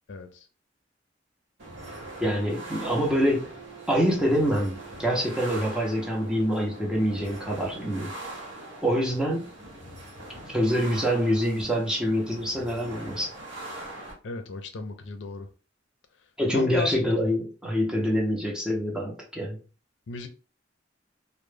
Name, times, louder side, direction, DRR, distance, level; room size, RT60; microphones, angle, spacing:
sound 1, 1.6-14.1, right 2 dB, 85° right, 1.0 m, -42 dB
voice 1, 2.2-3.5 3.9-8.1 8.8-9.5 10.5-13.3 16.4-19.6, equal, 5° right, 0.5 m, -25 dB
voice 2, 14.2-15.5 16.5-17.0 20.1-20.3, left 4 dB, 80° left, 0.4 m, -34 dB
2.1 x 2.0 x 3.2 m
head